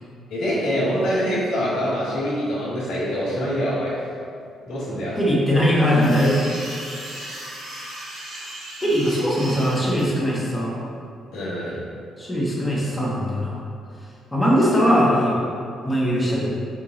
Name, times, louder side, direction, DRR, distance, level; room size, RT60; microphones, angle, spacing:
voice 1, 0.3-3.9 4.6-5.2 11.3-11.8, equal, 90° left, -8 dB, 1.4 m, -25 dB
voice 2, 5.2-6.4 8.8-10.8 12.2-13.6 14.3-15.4 15.8-16.6, equal, 10° left, -7 dB, 1.1 m, -20 dB
sound 1, 5.7-10.0, right 1 dB, 75° right, 1.3 m, -36 dB
4.6 x 2.8 x 3.7 m, 2.4 s
cardioid pair, 90°, 0 cm